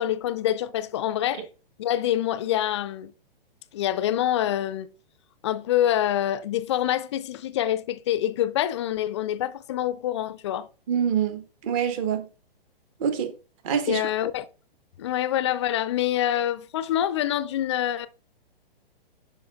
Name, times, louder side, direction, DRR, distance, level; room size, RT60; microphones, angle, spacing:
voice 1, 0.0-1.5 1.8-3.1 3.7-4.9 5.4-10.7 13.9-14.5 15.0-18.1, left 12 dB, 30° left, 0.4 m, -26 dB
voice 2, 10.9-12.3 13.0-13.3 13.6-14.1, right 8 dB, 35° right, 1.1 m, -26 dB
11.0 x 4.7 x 2.3 m
figure-of-eight pair, 115°, 30 cm